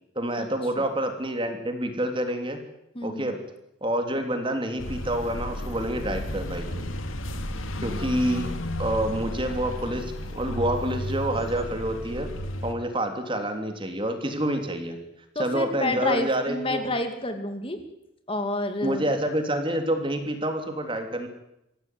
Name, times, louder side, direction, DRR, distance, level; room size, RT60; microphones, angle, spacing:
voice 1, 0.1-2.6 3.0-3.4 3.8-6.8 7.8-8.5 8.8-12.3 12.6-15.0 15.4-16.9 18.8-21.3, right 1 dB, 25° right, 6 dB, 3.2 m, -28 dB
voice 2, 2.9-3.3 15.3-17.8 18.3-19.1, left 2 dB, 25° left, 7 dB, 2.4 m, -29 dB
sound 1, 4.8-12.7, equal, 85° left, 2.4 m, -33 dB
26.0 x 16.0 x 9.3 m, 0.86 s
head